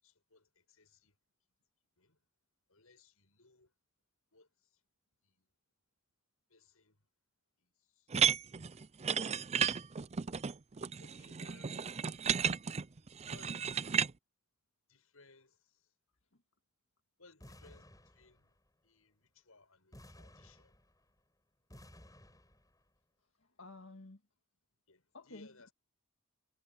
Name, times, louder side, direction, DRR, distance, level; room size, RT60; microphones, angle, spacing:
voice 1, 0.0-1.1 2.0-2.2 2.7-3.7 4.3-4.8 5.2-5.5 6.5-7.0 7.6-8.5 9.0-9.8 11.0-11.9 13.3-14.0 14.9-15.9 17.2-18.6 18.8-20.8 24.9-25.7, left 3 dB, 90° left, 7.6 m, -64 dB
sound 1, 8.1-14.1, right 7 dB, 30° right, 0.5 m, -33 dB
sound 2, 17.4-18.7 19.9-21.2 21.7-22.8, left 1 dB, 15° left, 7.1 m, -57 dB
voice 2, 23.4-24.2 25.1-25.7, left 2 dB, 70° left, 1.9 m, -52 dB
head